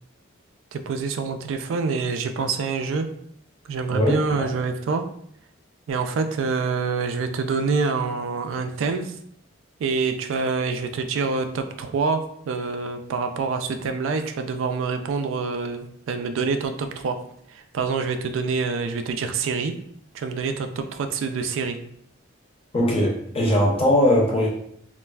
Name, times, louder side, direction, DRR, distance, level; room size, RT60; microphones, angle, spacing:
voice 1, 0.7-3.1 3.7-5.0 5.9-9.2 9.8-17.2 17.5-19.7 20.1-21.8, right 4 dB, 75° right, 7 dB, 0.3 m, -26 dB
voice 2, 22.7-24.5, left 1 dB, 30° left, -2 dB, 0.7 m, -20 dB
3.2 x 2.4 x 2.2 m, 0.68 s
head